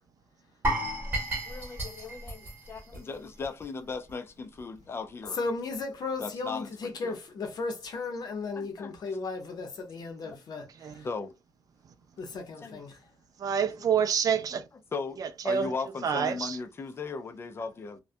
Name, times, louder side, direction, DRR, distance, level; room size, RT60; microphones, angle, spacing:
sound 1, 0.6-3.6 3.9-4.1 4.6-4.7, right 1 dB, 20° right, 1.1 m, -33 dB
voice 1, 1.5-5.4 6.2-7.2 8.2-8.9 10.2-10.4 11.0-11.3 12.6-12.8 13.8-13.9 14.9-18.0, left 4 dB, 30° left, 0.4 m, -38 dB
voice 2, 5.3-11.1 12.2-13.0, left 3 dB, 60° left, 0.7 m, -35 dB
voice 3, 13.4-14.6 15.2-15.7 16.0-16.6, right 7 dB, 50° right, 0.3 m, -27 dB
2.3 x 2.1 x 2.5 m
wide cardioid pair, 150°, 8 cm